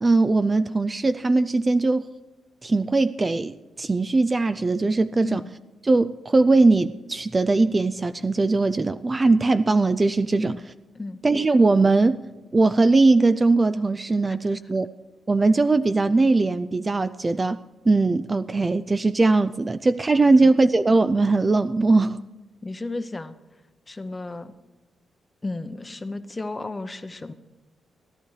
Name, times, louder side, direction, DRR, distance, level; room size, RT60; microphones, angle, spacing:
voice 1, 0.0-2.1 2.6-5.4 5.8-10.6 11.2-12.2 12.5-14.9 15.3-17.6 17.9-22.2, right 3 dB, 25° right, 12 dB, 0.3 m, -20 dB
voice 2, 22.6-23.3 23.9-24.5 25.4-27.3, left 2 dB, 20° left, 10 dB, 0.7 m, -33 dB
17.0 x 12.0 x 4.8 m, 1.1 s
cardioid pair, 130°, 0 cm